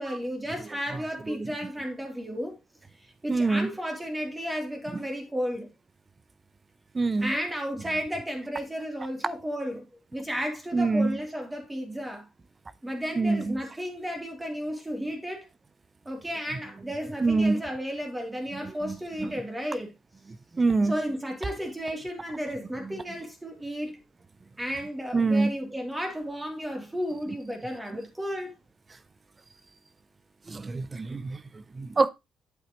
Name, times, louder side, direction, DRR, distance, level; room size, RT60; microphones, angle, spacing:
voice 1, 0.0-2.6 3.0-5.7 7.2-12.3 12.8-15.5 16.0-19.9 20.8-24.0 24.6-28.5, equal, 15° right, 3.2 m, -33 dB
voice 2, 0.9-1.5 3.3-3.7 6.9-7.3 10.7-11.2 13.2-13.6 17.2-17.6 18.6-19.3 20.5-21.0 22.8-23.0 25.1-25.5 30.5-32.1, right 3 dB, 30° right, 0.7 m, -26 dB
8.6 x 8.0 x 3.1 m
cardioid pair, 90°, 0 cm